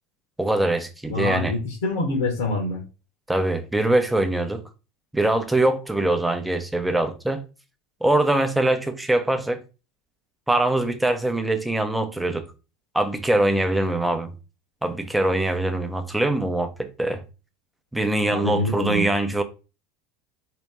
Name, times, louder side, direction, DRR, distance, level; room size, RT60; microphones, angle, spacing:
voice 1, 0.4-1.5 3.3-4.6 5.1-7.4 8.0-9.6 10.5-12.5 12.9-14.3 14.8-17.2 17.9-19.4, right 1 dB, 5° right, 0.7 m, -23 dB
voice 2, 1.1-2.8 18.3-19.1, left 2 dB, 65° left, 1.1 m, -25 dB
4.5 x 2.9 x 3.5 m
figure-of-eight pair, 75°, 0 cm